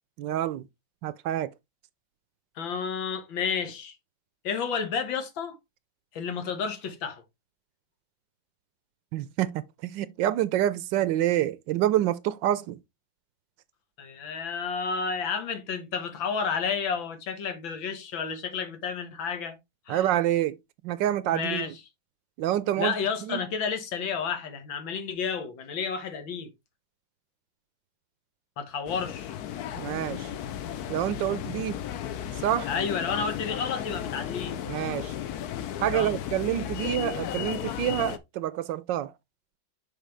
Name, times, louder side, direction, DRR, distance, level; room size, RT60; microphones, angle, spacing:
voice 1, 0.2-0.7 1.0-1.5 9.1-12.8 19.9-20.6 20.8-21.7 22.4-22.9 23.2-23.4 29.8-30.3 30.9-31.8 32.4-32.7 34.7-35.1 35.8-39.1, right 12 dB, 80° right, 1.2 m, -27 dB
voice 2, 2.6-4.0 4.4-5.6 6.1-7.2 14.0-19.6 19.9-20.1 21.3-21.7 22.8-26.5 28.6-29.4 32.7-34.6 35.9-36.2, left 6 dB, 85° left, 2.1 m, -31 dB
sound 1, 28.9-38.2, left 10 dB, 65° left, 1.1 m, -34 dB
6.5 x 5.8 x 3.2 m
omnidirectional pair, 2.1 m